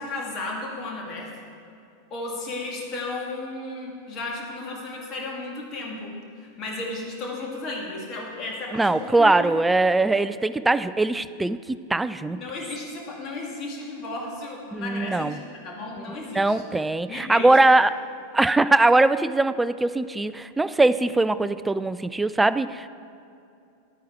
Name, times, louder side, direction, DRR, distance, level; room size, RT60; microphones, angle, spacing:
voice 1, 0.0-1.3 2.1-9.3 12.4-16.6 17.1-17.5, left 2 dB, 30° left, -2 dB, 2.3 m, -34 dB
voice 2, 8.7-12.4 14.7-15.4 16.3-18.0 18.3-22.9, right 2 dB, 10° right, 14 dB, 0.3 m, -21 dB
11.0 x 9.3 x 4.5 m, 2.5 s
figure-of-eight pair, 90°, 0 cm